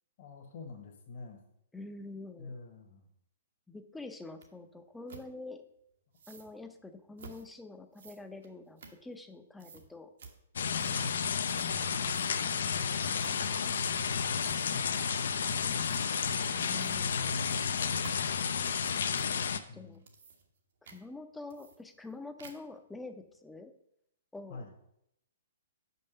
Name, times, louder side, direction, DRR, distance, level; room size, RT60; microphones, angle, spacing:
voice 1, 0.2-1.4 2.4-3.1 10.8-11.5 13.8-16.0 16.9-17.7 19.7-20.0 24.5-24.7, left 3 dB, 45° left, 0 dB, 1.2 m, -46 dB
voice 2, 1.7-2.5 3.7-5.6 6.3-10.1 16.5-17.3 19.5-20.0 20.8-23.7 24.3-24.6, left 3 dB, 5° left, 7 dB, 0.5 m, -46 dB
sound 1, 4.4-4.5 5.1-5.3 6.1-6.5 7.2-7.5 7.9-9.3 9.6-9.9 10.2-10.4 10.8-11.2 11.5-11.8 12.1-12.5 13.2-13.4 13.7-14.1 14.4-14.9 15.8-16.1 16.7-17.0 17.3-19.4 19.9-20.6 20.8-21.0 21.5-22.1 22.4-22.8, right 4 dB, 75° right, 1.2 m, -52 dB
sound 2, 10.6-19.6, left 6 dB, 75° left, 0.6 m, -31 dB
5.4 x 5.4 x 6.7 m, 0.77 s
hypercardioid pair, 155°, 0 cm